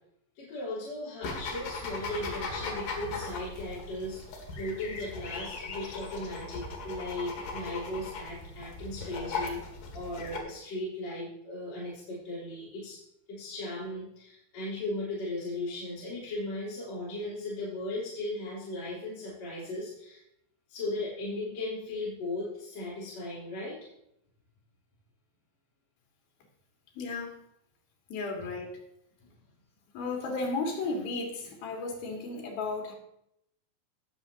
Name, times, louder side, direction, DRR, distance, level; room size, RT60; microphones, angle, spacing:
voice 1, 0.4-9.6 9.9-13.0 13.3-20.2 20.7-23.8 29.2-29.3, left 2 dB, 50° left, -9 dB, 4.4 m, -37 dB
sound 1, 1.2-10.4, left 3 dB, 65° left, 3.5 m, -38 dB
voice 2, 27.0-27.4 28.1-28.7 29.9-32.9, left 3 dB, 85° left, 0 dB, 3.8 m, -34 dB
19.0 x 7.0 x 2.8 m, 0.78 s
omnidirectional pair, 4.2 m